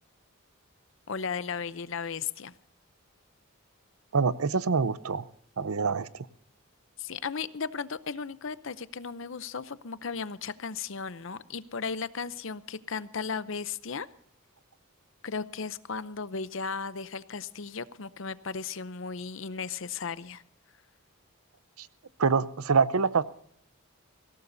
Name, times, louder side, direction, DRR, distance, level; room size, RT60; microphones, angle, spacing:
voice 1, 1.1-2.5 7.0-14.1 15.2-20.4, left 5 dB, 60° left, 15 dB, 0.7 m, -35 dB
voice 2, 4.1-5.3 5.6-6.3 21.8-21.9 22.2-23.2, right 5 dB, 85° right, 15 dB, 0.7 m, -25 dB
21.5 x 17.0 x 2.7 m, 0.67 s
head